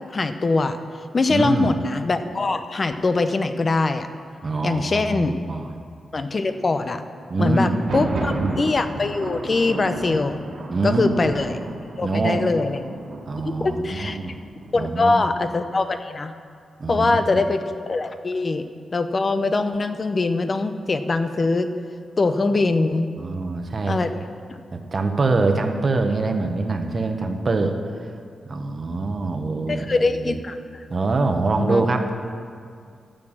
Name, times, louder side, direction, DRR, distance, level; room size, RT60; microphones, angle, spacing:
voice 1, 0.1-0.8 1.1-4.1 4.6-5.4 6.1-7.0 7.4-10.4 10.8-11.6 12.0-12.9 13.4-14.2 14.7-16.3 16.9-18.6 18.9-21.7 22.2-23.1 23.9-24.1 24.5-24.6 29.7-30.8 31.6-31.8, left 3 dB, 35° left, 9 dB, 0.6 m, -22 dB
voice 2, 1.3-1.7 4.4-5.7 7.3-8.6 10.7-11.3 12.0-12.5 13.3-14.4 14.7-15.1 16.8-17.4 23.2-24.0 24.7-27.8 28.4-30.4 30.9-32.1, right 3 dB, 40° right, 5 dB, 1.0 m, -24 dB
Thunder, 7.7-15.4, right 2 dB, 70° right, 1.9 m, -33 dB
12.5 x 6.8 x 7.4 m, 2.2 s
wide cardioid pair, 125°, 0 cm